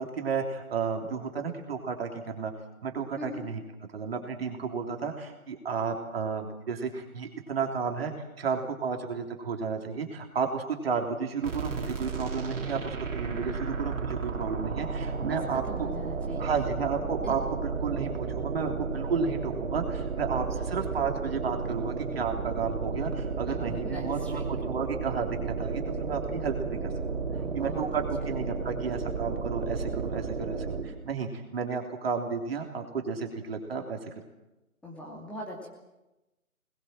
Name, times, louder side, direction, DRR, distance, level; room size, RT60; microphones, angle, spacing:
voice 1, 0.0-2.5 2.8-3.6 3.9-15.9 16.4-26.8 27.5-34.0, right 5 dB, 45° right, 3 dB, 3.3 m, -32 dB
sound 1, 11.4-31.1, right 5 dB, 60° right, 3.8 m, -33 dB
voice 2, 15.2-16.5 17.2-17.3 23.5-24.4 27.3-28.0 34.8-35.7, left 1 dB, 5° left, -3 dB, 2.7 m, -41 dB
24.5 x 20.5 x 7.6 m, 1.0 s
figure-of-eight pair, 145°, 43 cm